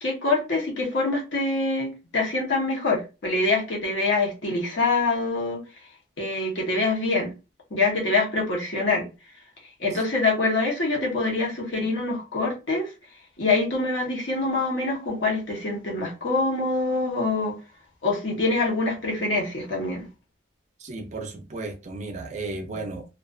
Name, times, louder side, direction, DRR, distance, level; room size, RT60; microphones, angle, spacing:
voice 1, 0.0-5.6 6.2-7.3 7.7-9.0 9.8-12.9 13.4-17.5 18.0-20.1 22.7-22.8, left 3 dB, 70° left, 0.9 m, -25 dB
voice 2, 20.8-23.1, right 3 dB, 40° right, 0.4 m, -34 dB
2.4 x 2.3 x 2.3 m
head